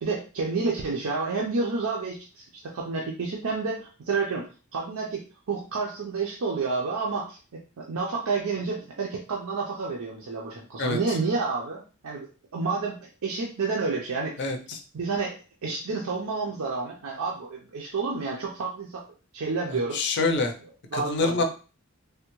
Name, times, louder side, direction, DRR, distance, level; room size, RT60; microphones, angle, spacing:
voice 1, 0.0-14.5 14.9-15.4 15.6-19.1 19.3-20.1 20.9-21.4, right 4 dB, 75° right, -1 dB, 0.5 m, -30 dB
voice 2, 14.4-14.8 19.9-20.5 20.9-21.4, left 3 dB, 50° left, 5 dB, 0.5 m, -26 dB
3.3 x 2.1 x 3.0 m, 0.35 s
head